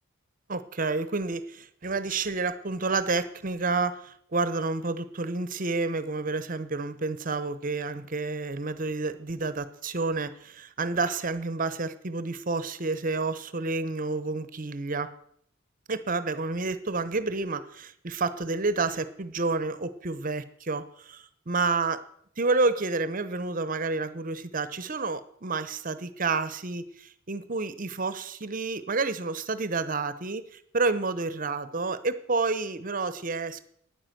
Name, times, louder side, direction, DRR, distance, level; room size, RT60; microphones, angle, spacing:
voice 1, 0.5-15.1 15.9-22.0 22.4-33.6, right 3 dB, 45° right, 14 dB, 0.9 m, -29 dB
9.7 x 9.7 x 7.9 m, 0.67 s
head